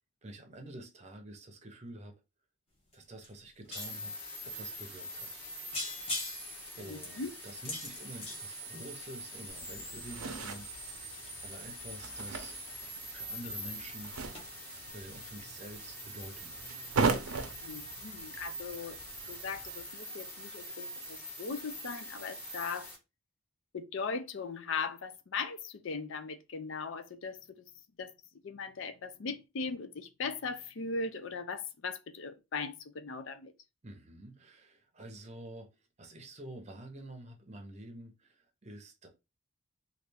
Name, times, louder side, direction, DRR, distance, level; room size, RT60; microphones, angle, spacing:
voice 1, 0.2-2.1 2.9-4.1 4.4-5.3 6.8-12.5 13.1-14.1 14.9-16.8 33.8-35.7 36.0-39.1, right 1 dB, 30° right, 0.7 m, -48 dB
sound 1, 2.9-3.0 3.2-4.1 4.8-4.9 5.2-5.5 5.7-9.3 9.8-13.2 13.4-13.8 14.0-14.1 14.4-14.5, left 2 dB, 25° left, 1.0 m, -42 dB
sound 2, 3.8-23.0, equal, 10° left, 1.0 m, -44 dB
voice 2, 6.8-7.3 17.6-19.0 19.3-22.9 23.7-27.4 28.0-28.1 28.4-33.5, left 4 dB, 60° left, 0.4 m, -39 dB
sound 3, 9.5-19.8, right 4 dB, 90° right, 0.6 m, -39 dB
3.2 x 2.4 x 3.3 m
head